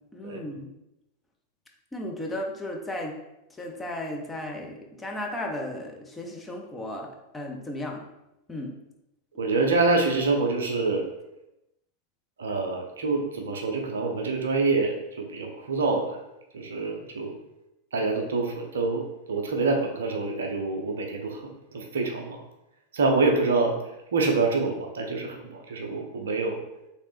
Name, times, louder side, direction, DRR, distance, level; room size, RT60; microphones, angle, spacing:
voice 1, 0.1-0.7 1.9-3.1 3.5-8.1 8.5-8.7, left 1 dB, 10° left, 0 dB, 0.6 m, -35 dB
voice 2, 9.4-11.1 12.4-16.2 16.5-17.4 17.9-22.4 22.9-23.8 24.1-26.6, right 3 dB, 65° right, 3 dB, 0.5 m, -26 dB
3.2 x 3.0 x 3.1 m, 0.89 s
figure-of-eight pair, 90°, 0 cm